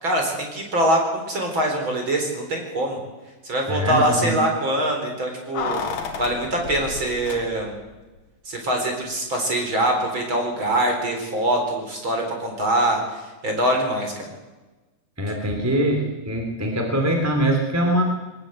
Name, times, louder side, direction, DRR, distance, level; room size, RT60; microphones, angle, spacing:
voice 1, 0.0-3.0 3.4-7.7 8.4-13.0 13.4-14.3, right 1 dB, 35° right, 2 dB, 4.9 m, -23 dB
voice 2, 3.7-4.4 15.2-18.0, right 1 dB, 5° right, 2 dB, 2.5 m, -23 dB
Keys jangling, 5.5-7.9 8.2-8.3, left 6 dB, 60° left, 3.4 m, -32 dB
21.5 x 19.0 x 7.8 m, 1.2 s
omnidirectional pair, 4.2 m